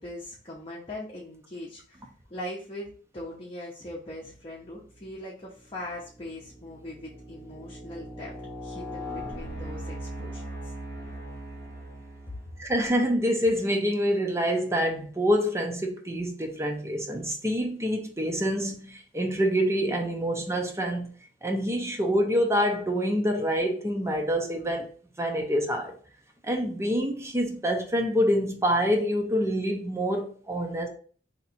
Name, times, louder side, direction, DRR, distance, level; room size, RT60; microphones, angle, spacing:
voice 1, 0.0-2.0 2.3-8.4 8.6-10.7, left 1 dB, 30° left, 0.9 m, -40 dB
sound 1, 4.8-5.2 5.8-12.6, equal, 15° left, 1.8 m, -39 dB
voice 2, 12.6-21.2 21.4-24.9 25.2-25.9 26.4-30.9, equal, 15° right, 0.7 m, -26 dB
3.2 x 2.9 x 4.2 m
head